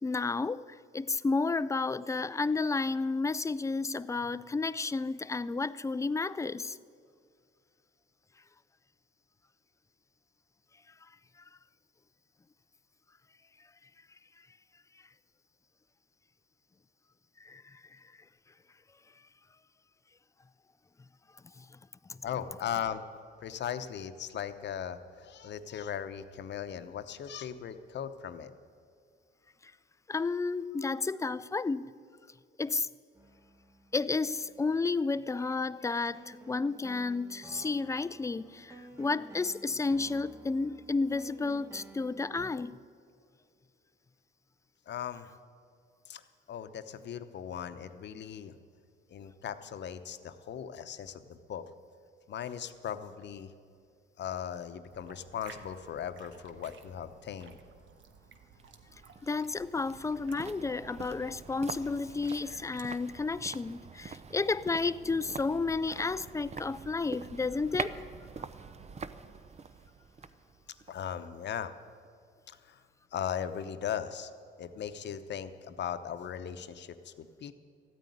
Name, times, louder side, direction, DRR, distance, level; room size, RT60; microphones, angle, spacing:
voice 1, 0.0-6.8 17.4-18.0 21.6-21.7 29.6-29.7 30.1-31.9 32.6-32.9 33.9-42.8 59.2-68.0, left 3 dB, 15° left, 0.4 m, -32 dB
voice 2, 22.2-23.0 23.4-28.5 30.6-30.9 44.9-45.3 46.1-46.2 46.5-48.5 49.1-51.6 52.3-53.5 54.2-57.6 70.9-71.7 72.5-72.8 73.1-74.3 74.6-77.5, left 9 dB, 60° left, 0.9 m, -38 dB
sound 1, 33.1-42.5, right 1 dB, 15° right, 1.6 m, -53 dB
sound 2, 54.9-62.9, right 5 dB, 70° right, 1.2 m, -56 dB
sound 3, 58.6-71.8 72.0-72.1, right 5 dB, 35° right, 0.6 m, -45 dB
14.0 x 9.4 x 9.2 m
cardioid pair, 90°, 20 cm